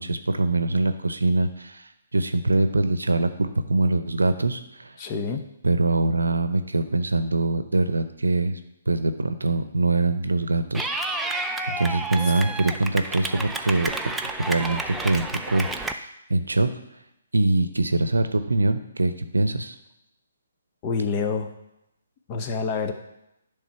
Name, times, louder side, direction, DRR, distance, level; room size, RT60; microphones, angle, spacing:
voice 1, 0.0-4.9 5.6-8.6 8.9-11.4 11.8-13.9 14.4-16.7 17.3-19.7, right 2 dB, 80° right, 10 dB, 0.7 m, -23 dB
voice 2, 5.0-5.4 20.8-21.5 22.3-22.9, left 5 dB, 30° left, 5 dB, 0.9 m, -27 dB
Clapping / Cheering, 10.7-15.9, right 2 dB, 5° right, 0.4 m, -30 dB
10.0 x 3.6 x 5.7 m, 0.86 s
figure-of-eight pair, 135°, 0 cm